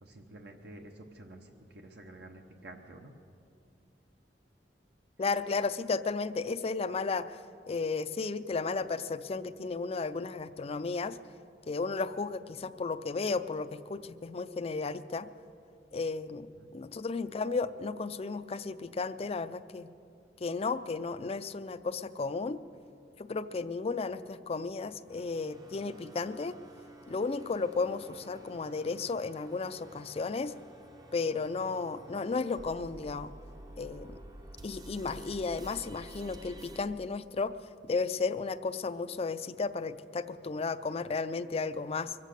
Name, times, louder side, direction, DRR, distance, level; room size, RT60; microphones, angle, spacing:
voice 1, 0.0-3.1 16.6-16.7, right 1 dB, 65° right, 3 dB, 1.0 m, -50 dB
voice 2, 5.2-7.4 7.7-11.2 11.7-15.3 15.9-19.9 20.4-22.6 23.2-26.6 27.1-30.5 31.1-33.3 33.8-34.2 34.6-37.5 37.8-42.2, left 4 dB, 35° left, 12 dB, 0.4 m, -34 dB
sound 1, 25.1-36.8, right 1 dB, 25° right, 0.7 m, -51 dB
23.0 x 8.3 x 6.6 m, 2.6 s
head